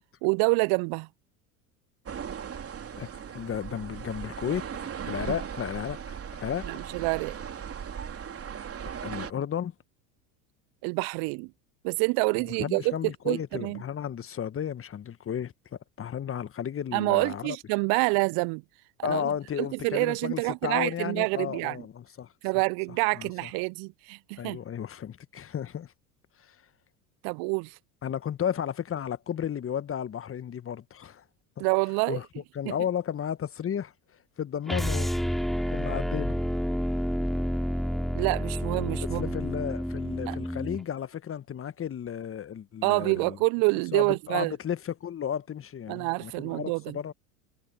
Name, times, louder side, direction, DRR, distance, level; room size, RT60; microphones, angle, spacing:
voice 1, 0.2-1.1 6.7-7.3 10.8-11.5 11.8-13.0 13.3-13.8 16.9-18.6 19.0-19.3 19.8-21.8 22.4-24.6 27.2-27.7 31.6-32.2 32.7-32.8 38.2-39.3 40.3-40.4 42.8-44.5 45.9-47.0, right 31 dB, 55° right, 0.7 m, -27 dB
sound 1, 2.1-9.3, right 7 dB, 30° right, 3.5 m, -38 dB
voice 2, 2.9-6.8 9.0-9.7 12.6-17.6 19.0-22.3 23.1-23.5 24.4-25.9 26.4-26.6 28.0-31.2 31.6-31.7 32.1-32.3 32.5-33.9 34.4-35.1 35.7-36.3 39.1-43.4 43.9-47.1, left 9 dB, 30° left, 1.4 m, -33 dB
sound 2, 34.7-40.8, equal, ahead, 3.0 m, -29 dB
hypercardioid pair, 75°, 45 cm